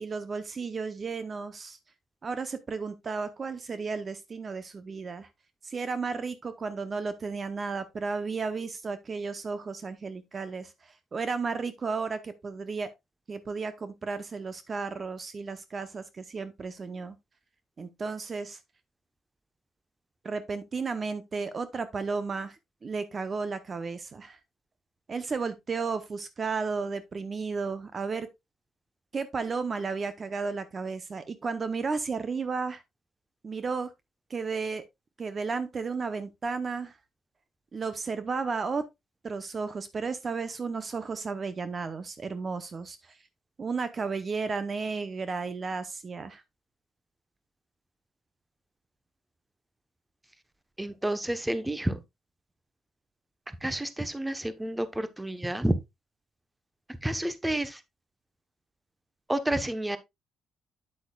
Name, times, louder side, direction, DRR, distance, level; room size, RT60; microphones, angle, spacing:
voice 1, 0.0-1.8 2.2-5.3 5.6-12.9 13.3-17.2 17.8-18.6 20.2-24.4 25.1-28.3 29.1-32.8 33.4-33.9 34.3-34.8 35.2-37.0 37.7-38.9 39.2-43.2 43.6-46.4, right 4 dB, 40° right, 0.8 m, -33 dB
voice 2, 50.8-52.0 53.6-55.8 57.0-57.8 59.3-60.0, right 1 dB, 10° right, 1.0 m, -29 dB
8.7 x 7.9 x 2.3 m
cardioid pair, 90°, 0 cm